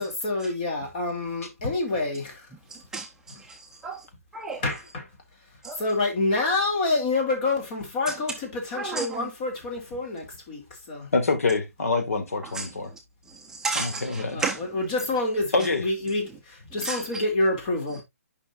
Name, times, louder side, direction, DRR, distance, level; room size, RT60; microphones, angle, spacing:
voice 1, 0.0-2.4 4.6-5.0 5.8-11.1 14.3-14.4 14.7-18.0, left 2 dB, 35° left, 2.6 m, -27 dB
voice 2, 2.5-4.1 4.3-4.6 5.6-5.8 8.1-8.2 8.7-9.3 12.4-14.8 15.6-15.7 16.3-16.4 16.8-17.2 17.9-18.0, right 4 dB, 5° right, 0.6 m, -34 dB
voice 3, 11.1-12.9 13.8-14.4 15.5-15.8, left 3 dB, 75° left, 1.8 m, -25 dB
9.0 x 5.5 x 2.5 m
hypercardioid pair, 145°, 8 cm